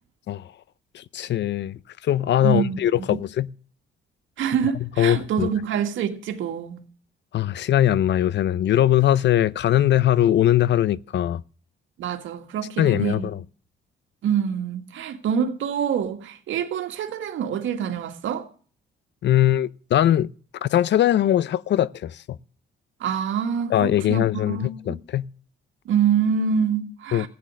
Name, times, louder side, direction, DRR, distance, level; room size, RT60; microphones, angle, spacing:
voice 1, 0.9-3.5 5.0-5.5 7.3-11.4 12.8-13.4 19.2-20.3 20.6-22.4 23.7-24.6 24.9-25.3 27.1-27.3, left 12 dB, 65° left, 0.6 m, -21 dB
voice 2, 2.4-3.2 4.4-6.8 12.0-13.3 14.2-18.5 23.0-25.0 25.9-27.3, right 7 dB, 75° right, 2.1 m, -26 dB
15.5 x 9.7 x 6.4 m
cardioid pair, 90°, 20 cm